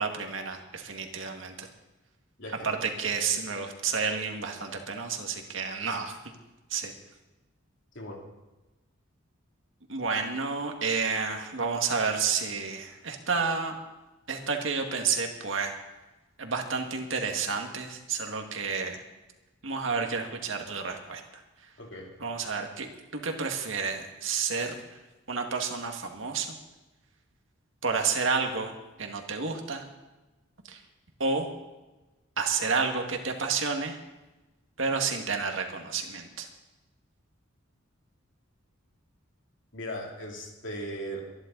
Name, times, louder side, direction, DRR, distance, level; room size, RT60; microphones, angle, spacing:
voice 1, 0.0-1.7 2.6-6.2 6.7-6.9 9.9-13.8 14.3-15.7 16.4-19.0 19.6-21.4 22.2-24.7 25.3-26.6 27.8-28.7 29.0-29.9 30.7-30.8 31.2-31.5 32.4-34.0 34.8-36.5, right 5 dB, 70° right, 3 dB, 2.0 m, -30 dB
voice 2, 2.4-2.7 7.9-8.2 21.8-22.1 39.7-41.2, equal, 60° left, 0 dB, 3.2 m, -38 dB
23.5 x 11.5 x 4.0 m, 1.1 s
head